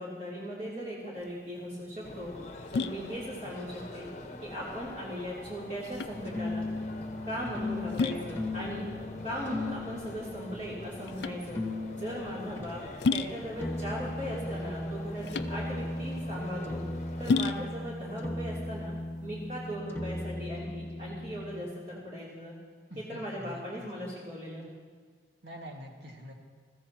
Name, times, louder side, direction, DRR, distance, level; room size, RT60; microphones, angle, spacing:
voice 1, 0.0-2.3 2.7-4.1 4.4-6.6 7.3-8.8 9.2-11.6 12.0-12.8 13.1-16.8 17.2-18.9 19.2-22.5 23.1-24.7, equal, 40° right, -8 dB, 3.2 m, -38 dB
sound 1, 1.1-19.7, left 4 dB, 75° left, 0.4 m, -35 dB
sound 2, 2.0-17.5, left 1 dB, 40° left, 0.9 m, -45 dB
sound 3, 6.1-12.7 13.6-21.6, left 1 dB, 10° left, 1.3 m, -37 dB
voice 2, 22.9-24.2 25.4-26.3, equal, 85° right, 0 dB, 2.0 m, -46 dB
22.0 x 14.5 x 3.0 m, 1.6 s
head